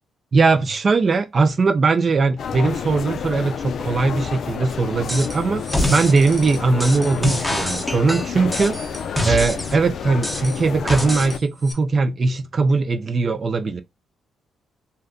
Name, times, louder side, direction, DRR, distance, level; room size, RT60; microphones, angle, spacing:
voice 1, 0.3-5.6 5.9-8.8 9.2-13.8, right 4 dB, 40° right, 0.3 m, -20 dB
sound 1, 2.4-11.4, left 7 dB, 60° left, 0.4 m, -30 dB
sound 2, 5.1-5.4 5.7-9.8 10.2-11.4 11.7-11.8, left 1 dB, 5° left, 0.8 m, -26 dB
2.7 x 2.1 x 3.6 m
cardioid pair, 90°, 0 cm